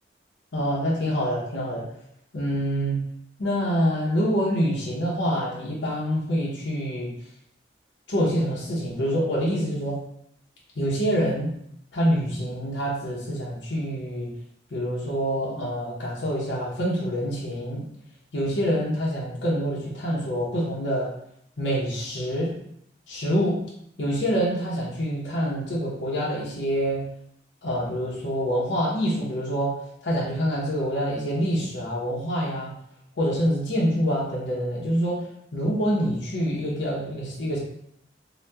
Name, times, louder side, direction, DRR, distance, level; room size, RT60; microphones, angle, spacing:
voice 1, 0.5-1.8 2.3-3.0 3.4-7.1 8.1-10.0 10.8-11.5 11.9-14.3 14.7-17.8 18.3-21.1 21.6-22.5 23.1-23.6 24.0-27.0 27.6-29.7 30.0-32.7 33.2-35.2 35.5-37.6, equal, 75° left, -5 dB, 0.8 m, -26 dB
2.8 x 2.2 x 3.3 m, 0.72 s
head